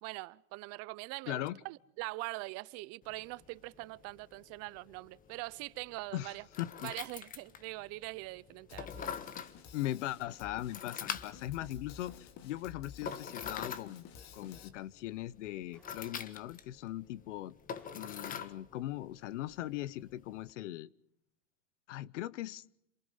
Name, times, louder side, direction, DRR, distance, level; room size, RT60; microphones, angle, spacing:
voice 1, 0.0-6.4 6.8-9.0, right 23 dB, 40° right, 0.7 m, -43 dB
voice 2, 1.3-1.6 6.1-6.9 9.7-14.0 14.3-17.5 17.9-20.9 21.9-22.6, left 14 dB, 70° left, 1.0 m, -39 dB
sound 1, 3.0-20.5, left 7 dB, 20° left, 1.4 m, -46 dB
Drum kit, 8.7-14.7, left 8 dB, 45° left, 2.5 m, -52 dB
Gunshot gunfire, 10.4-11.1 15.7-16.4 17.8-18.5, equal, 5° left, 3.4 m, -67 dB
27.5 x 21.5 x 5.6 m
supercardioid pair, 135°, 37 cm